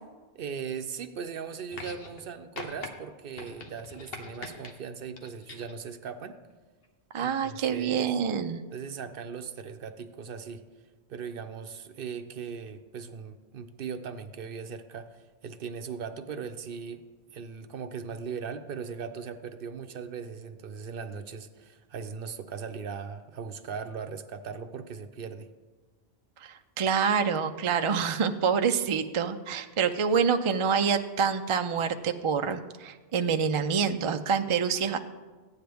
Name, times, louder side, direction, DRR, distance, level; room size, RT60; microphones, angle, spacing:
voice 1, 0.3-6.4 7.1-8.1 8.7-10.6 11.1-17.0 17.3-25.5, right 6 dB, 65° right, 9 dB, 0.8 m, -39 dB
sound 1, 1.7-2.3 2.6-2.9 3.4-4.7 5.2-5.8 6.8-6.9, left 3 dB, 65° left, 1.2 m, -42 dB
voice 2, 7.1-8.6 26.4-35.0, right 6 dB, 45° right, 8 dB, 0.4 m, -27 dB
14.5 x 9.4 x 3.4 m, 1.3 s
omnidirectional pair, 1.1 m